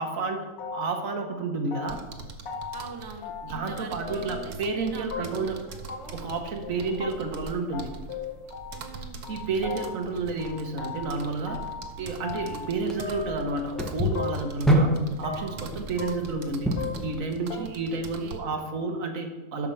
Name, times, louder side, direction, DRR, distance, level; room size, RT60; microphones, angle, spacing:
voice 1, 0.0-2.0 3.4-5.6 6.1-7.9 9.3-11.6 12.0-14.9 15.2-16.7 17.0-19.7, right 3 dB, 65° right, 4 dB, 1.4 m, -31 dB
sound 1, 0.6-1.1 1.4-2.2 2.5-2.9 3.2-3.8 4.0-4.6 5.1-5.6 5.9-6.0 6.3-6.4 6.6-6.7 7.0-7.1 7.4-7.5 7.7-8.9 9.2-10.1 10.4-11.9 12.2-12.7 13.0-13.9 14.1-14.6 14.9-15.6 16.0-17.2 17.5-17.6, left 6 dB, 80° left, 1.7 m, -37 dB
sound 2, 1.8-18.4, right 5 dB, 85° right, 1.4 m, -43 dB
voice 2, 2.7-5.6 8.7-9.2 17.5-18.5, right 4 dB, 25° right, 5 dB, 0.5 m, -43 dB
sound 3, 5.0-17.1, equal, ahead, 0.9 m, -32 dB
12.0 x 4.8 x 5.6 m, 1.2 s
omnidirectional pair, 1.6 m